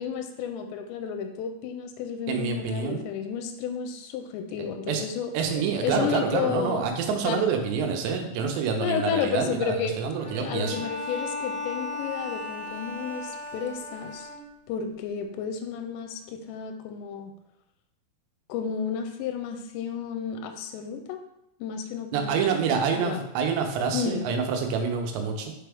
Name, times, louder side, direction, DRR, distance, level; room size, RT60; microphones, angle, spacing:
voice 1, 0.0-6.8 7.2-7.4 8.8-9.9 10.4-14.3 14.7-17.3 18.5-21.2 21.6-23.2 23.9-24.2, left 7 dB, 85° left, 5 dB, 2.8 m, -32 dB
voice 2, 2.3-3.0 4.9-5.0 5.3-10.8 22.1-25.5, right 6 dB, 80° right, 4 dB, 2.9 m, -27 dB
Bowed string instrument, 10.2-14.8, left 2 dB, 60° right, 2.5 m, -36 dB
6.1 x 4.6 x 3.4 m, 0.82 s
omnidirectional pair, 5.1 m